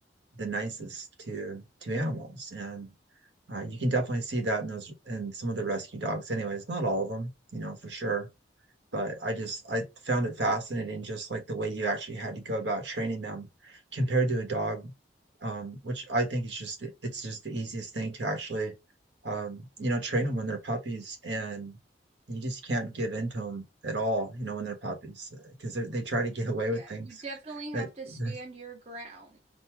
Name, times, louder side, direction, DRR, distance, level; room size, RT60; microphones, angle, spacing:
voice 1, 0.4-2.9 3.5-8.3 8.9-14.9 15.4-18.7 19.2-21.8 22.3-27.2 27.7-27.9 28.2-28.3, right 2 dB, 70° right, 1.4 m, -32 dB
voice 2, 26.7-29.4, right 3 dB, 35° right, 0.8 m, -42 dB
4.3 x 2.2 x 4.4 m
head